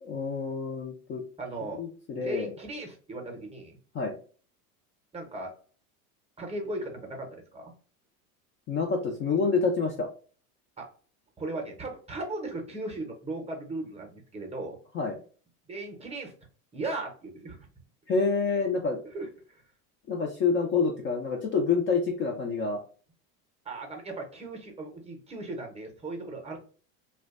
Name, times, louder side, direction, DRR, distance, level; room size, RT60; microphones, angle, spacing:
voice 1, 0.0-1.2 1.8-2.5 3.9-4.1 8.7-10.1 14.9-15.2 18.1-19.0 20.1-22.8, left 4 dB, 30° left, 1 dB, 0.4 m, -27 dB
voice 2, 1.4-1.9 2.1-3.8 5.1-5.5 6.4-7.7 10.8-10.9 11.4-14.8 15.7-16.3 16.7-17.7 19.1-19.6 23.6-26.6, right 2 dB, 15° right, 2 dB, 0.6 m, -37 dB
2.4 x 2.2 x 2.3 m, 0.41 s
supercardioid pair, 100°, 43 cm